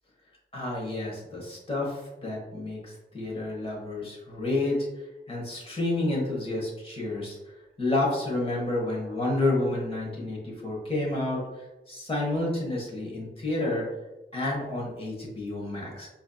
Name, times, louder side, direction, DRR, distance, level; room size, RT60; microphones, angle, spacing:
voice 1, 0.5-4.8 5.3-7.4 7.8-11.4 11.9-13.8 14.3-16.1, left 2 dB, 25° left, -4 dB, 1.3 m, -30 dB
4.3 x 2.7 x 2.4 m, 1.0 s
wide cardioid pair, 95°, 21 cm